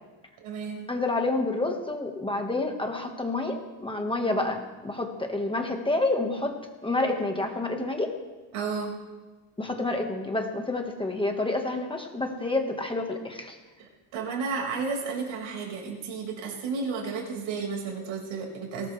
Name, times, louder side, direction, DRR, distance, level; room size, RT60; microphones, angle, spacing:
voice 1, 0.4-0.9 8.5-8.9 13.8-18.9, right 5 dB, 75° right, 0 dB, 5.0 m, -32 dB
voice 2, 0.9-6.6 6.8-8.1 9.6-13.6, left 2 dB, 10° left, 3 dB, 1.3 m, -28 dB
21.0 x 18.5 x 3.3 m, 1.2 s
cardioid pair, 155°, 49 cm